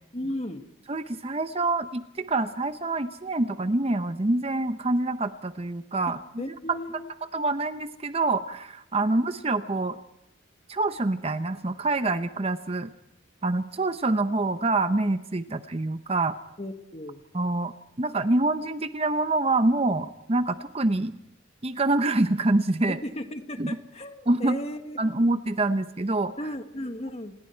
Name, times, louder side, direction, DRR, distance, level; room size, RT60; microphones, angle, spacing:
voice 1, 0.1-0.6 6.1-7.1 16.6-17.2 22.9-25.0 26.4-27.3, left 1 dB, 30° left, 6 dB, 1.7 m, -35 dB
voice 2, 0.9-6.2 6.7-6.8 7.3-10.0 10.7-12.9 13.4-16.3 17.3-21.2 21.6-23.0 23.6-23.8 24.3-24.6 25.0-26.3, right 2 dB, 30° right, 10 dB, 0.7 m, -26 dB
28.5 x 20.5 x 4.5 m, 0.82 s
head